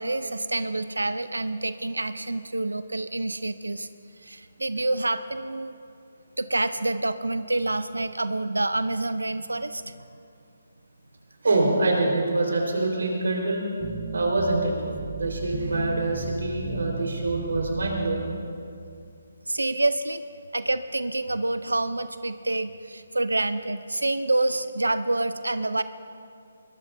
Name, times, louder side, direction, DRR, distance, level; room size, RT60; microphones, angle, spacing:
voice 1, 0.0-3.9 4.2-5.7 6.4-9.9 19.5-20.2 20.5-25.8, right 2 dB, 90° right, 12 dB, 0.6 m, -27 dB
voice 2, 11.4-13.6 14.1-14.7 15.1-18.3, right 2 dB, 75° right, 0 dB, 4.3 m, -25 dB
sound 1, 13.8-18.3, right 3 dB, 30° right, 1.3 m, -35 dB
21.5 x 20.0 x 2.7 m, 2.4 s
figure-of-eight pair, 150°, 0 cm